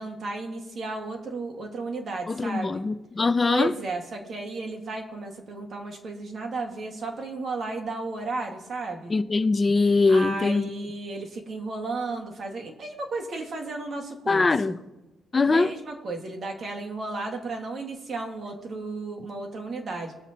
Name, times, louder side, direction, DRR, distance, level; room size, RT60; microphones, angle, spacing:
voice 1, 0.0-2.9 3.4-9.1 10.1-14.7 15.4-20.1, right 3 dB, 45° right, 1.7 m, -34 dB
voice 2, 2.3-3.7 9.1-10.7 14.3-14.7 15.3-15.7, left 3 dB, 25° left, 0.5 m, -22 dB
21.0 x 7.1 x 2.9 m
cardioid pair, 130°, 0 cm